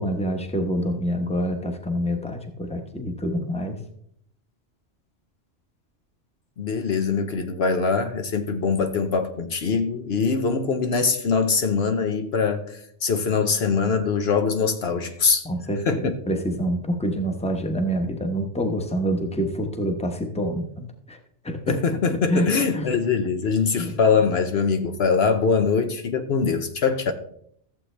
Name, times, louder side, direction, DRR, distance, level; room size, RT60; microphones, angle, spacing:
voice 1, 0.0-3.8 15.4-21.2 21.4-21.8 22.3-22.9 23.8-23.9, equal, 5° left, 1.0 m, -27 dB
voice 2, 6.6-12.6 13.0-15.5 15.9-16.2 21.7-27.1, left 5 dB, 65° left, 1.0 m, -23 dB
14.5 x 7.8 x 3.3 m
omnidirectional pair, 1.2 m